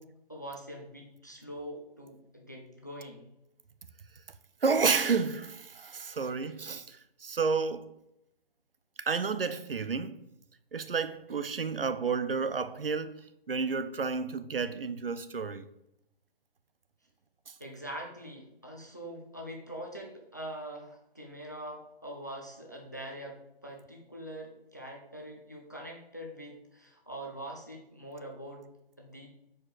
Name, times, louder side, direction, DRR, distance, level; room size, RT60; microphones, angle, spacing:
voice 1, 0.0-3.3 17.6-28.7 29.0-29.3, right 1 dB, 20° left, 0.4 m, -43 dB
voice 2, 4.6-7.9 9.0-10.2 10.7-15.7 17.5-17.6, right 5 dB, 65° right, 0.5 m, -31 dB
4.8 x 4.6 x 4.4 m
figure-of-eight pair, 145°, 30 cm